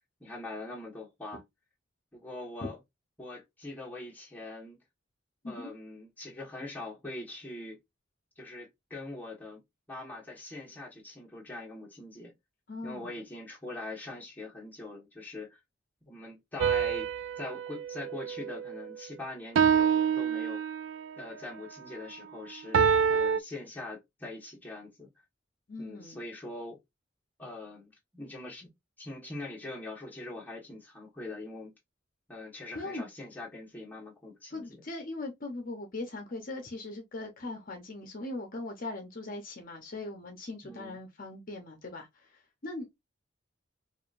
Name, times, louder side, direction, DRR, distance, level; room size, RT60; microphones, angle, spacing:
voice 1, 0.2-1.4 2.1-2.8 3.2-4.8 5.4-7.8 8.4-9.6 9.9-12.3 12.8-15.6 16.0-17.1 17.4-20.6 21.2-25.1 25.8-26.8 27.4-28.7 29.0-31.7 32.3-34.8 40.6-41.0, left 2 dB, 10° left, 1.5 m, -42 dB
voice 2, 12.7-13.2 25.7-26.2 32.7-33.1 34.5-43.0, left 2 dB, 45° left, 0.8 m, -40 dB
sound 1, 16.6-19.0 19.5-21.1 22.7-23.4, right 7 dB, 65° right, 0.3 m, -27 dB
4.9 x 2.6 x 2.5 m
head